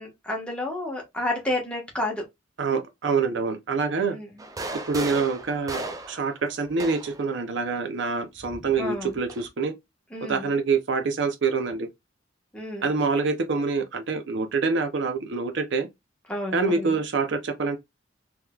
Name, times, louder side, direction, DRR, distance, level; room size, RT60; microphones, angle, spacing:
voice 1, 0.0-2.2 4.1-4.3 8.8-9.2 10.1-10.5 12.5-12.9 16.3-17.0, left 1 dB, 5° left, 1.2 m, -31 dB
voice 2, 2.6-4.2 4.9-9.7 10.2-11.9 12.8-15.9 16.5-17.8, right 4 dB, 60° right, 0.6 m, -26 dB
sound 1, 4.4-7.3 8.4-9.5, right 2 dB, 20° right, 0.4 m, -36 dB
3.7 x 2.9 x 2.3 m
head